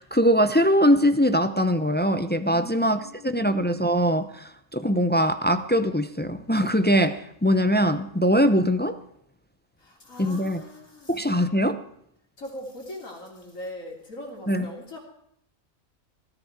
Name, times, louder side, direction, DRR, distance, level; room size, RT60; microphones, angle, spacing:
voice 1, 0.0-9.0 10.2-10.6 11.1-11.8 14.5-14.7, equal, 15° left, 10 dB, 0.4 m, -22 dB
voice 2, 2.5-3.5 9.8-11.4 12.4-15.0, left 1 dB, 75° left, -1 dB, 3.7 m, -41 dB
17.5 x 14.5 x 4.7 m, 0.72 s
omnidirectional pair, 1.4 m